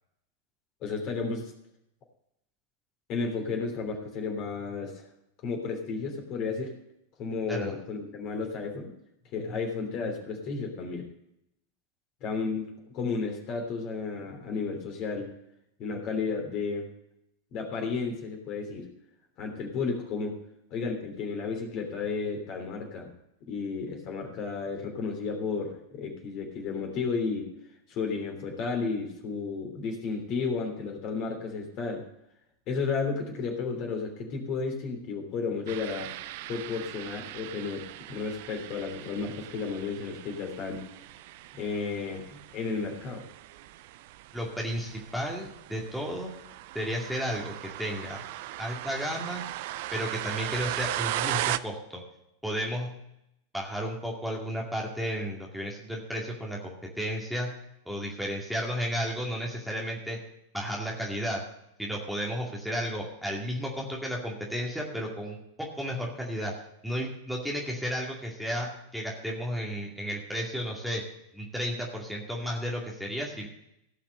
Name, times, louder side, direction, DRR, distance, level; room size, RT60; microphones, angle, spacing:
voice 1, 0.8-1.5 3.1-5.1 5.4-6.7 7.2-8.9 9.3-11.1 12.2-12.7 12.9-15.3 15.8-16.9 17.5-18.9 19.4-20.4 20.7-23.1 23.5-27.5 27.9-32.0 32.7-36.1 36.5-40.8 41.5-43.2, left 4 dB, 40° left, 2 dB, 3.1 m, -33 dB
sound 1, 35.7-51.6, right 15 dB, 50° right, 0.4 m, -38 dB
voice 2, 44.3-46.3 46.7-47.5 47.8-48.2 48.6-49.4 49.9-52.0 52.4-52.9 53.5-57.5 57.9-60.2 60.5-61.4 61.8-66.5 66.8-71.0 71.3-73.5, equal, ahead, -2 dB, 2.2 m, -33 dB
17.0 x 5.8 x 6.6 m, 0.80 s
figure-of-eight pair, 90°, 0 cm